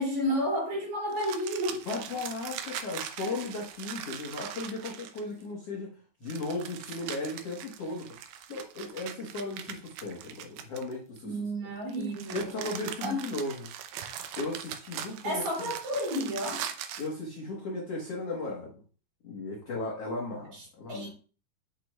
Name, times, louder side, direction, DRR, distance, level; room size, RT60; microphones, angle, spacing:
voice 1, 0.0-1.8 11.2-12.5 13.0-13.2 15.2-16.6 20.5-21.1, equal, 50° right, 4.1 m, -31 dB
sound 1, 1.1-5.4 6.3-11.2 11.9-17.1, right 9 dB, 90° right, 1.9 m, -41 dB
voice 2, 1.9-8.1 8.5-11.3 12.3-13.7 14.4-15.4 17.0-18.7 19.2-21.1, left 2 dB, 60° left, 1.7 m, -36 dB
8.5 x 6.4 x 2.4 m
omnidirectional pair, 4.5 m